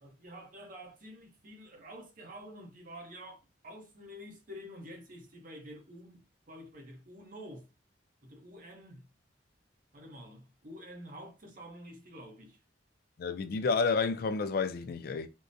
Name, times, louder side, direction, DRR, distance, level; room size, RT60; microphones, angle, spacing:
voice 1, 0.0-7.7 8.2-9.1 9.9-12.6, equal, 50° right, 0.8 m, -49 dB
voice 2, 13.2-15.3, left 4 dB, 55° left, 0.4 m, -30 dB
3.7 x 2.1 x 2.6 m
head